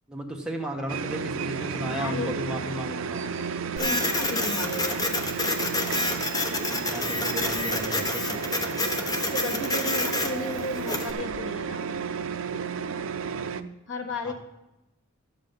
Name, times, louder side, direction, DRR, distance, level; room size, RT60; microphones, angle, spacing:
voice 1, 0.1-3.2 6.7-8.2 14.2-14.3, right 1 dB, 5° right, -1 dB, 1.4 m, -34 dB
sound 1, 0.9-13.6, right 5 dB, 70° right, 0.5 m, -32 dB
voice 2, 1.8-2.7 3.7-5.1 6.2-6.7 9.1-11.9 13.9-14.3, left 1 dB, 65° left, 4 dB, 1.4 m, -34 dB
Printer, 3.8-11.1, left 2 dB, 20° left, 0.8 m, -29 dB
12.5 x 7.6 x 5.4 m, 0.93 s
head